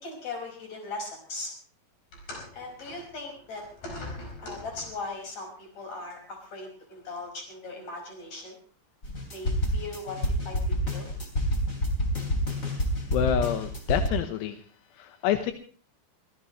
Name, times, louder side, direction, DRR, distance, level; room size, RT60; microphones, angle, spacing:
voice 1, 0.0-1.5 2.5-3.6 4.4-8.6 9.3-11.1, left 3 dB, 40° left, 2 dB, 6.5 m, -39 dB
sound 1, 2.1-5.2 6.2-6.3 7.2-7.3, left 1 dB, 60° left, 6.4 m, -42 dB
sound 2, 9.0-14.1, equal, 20° left, 3.0 m, -28 dB
voice 2, 13.1-14.6 15.0-15.5, left 10 dB, 85° left, 8 dB, 3.2 m, -27 dB
23.5 x 16.5 x 3.1 m, 0.41 s
omnidirectional pair, 4.8 m